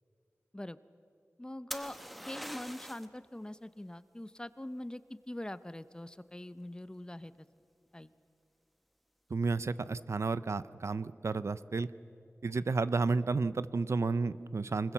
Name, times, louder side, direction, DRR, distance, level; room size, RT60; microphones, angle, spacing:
voice 1, 1.4-2.0 2.2-7.5 7.9-8.1, left 1 dB, 15° left, 14 dB, 0.6 m, -43 dB
sound 1, 1.7-3.2 6.8-7.3, equal, ahead, 1.1 m, -43 dB
voice 2, 9.3-11.9 12.4-14.9, right 4 dB, 70° right, 15 dB, 0.6 m, -32 dB
25.0 x 21.0 x 7.3 m, 2.5 s
wide cardioid pair, 70°, 5 cm